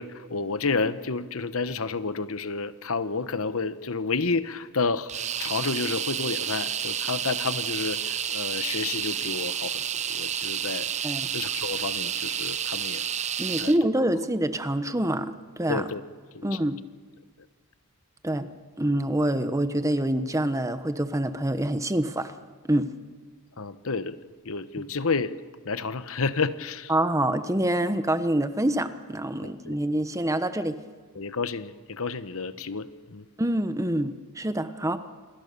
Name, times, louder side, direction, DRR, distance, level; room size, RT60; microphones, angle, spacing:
voice 1, 0.0-5.1 5.4-10.9 11.3-13.0 13.6-13.7 15.7-16.0 16.3-16.6 23.6-24.2 24.4-25.3 25.6-26.9 29.4-29.7 31.1-33.2, left 4 dB, 65° left, 12 dB, 1.1 m, -30 dB
sound 1, 5.1-13.8, right 9 dB, 30° right, 0.7 m, -30 dB
voice 2, 13.4-15.8 16.4-16.8 18.2-18.5 18.8-22.3 22.7-22.9 26.9-30.8 33.4-35.0, right 1 dB, 15° right, 10 dB, 1.1 m, -26 dB
28.0 x 21.5 x 6.8 m, 1.4 s
head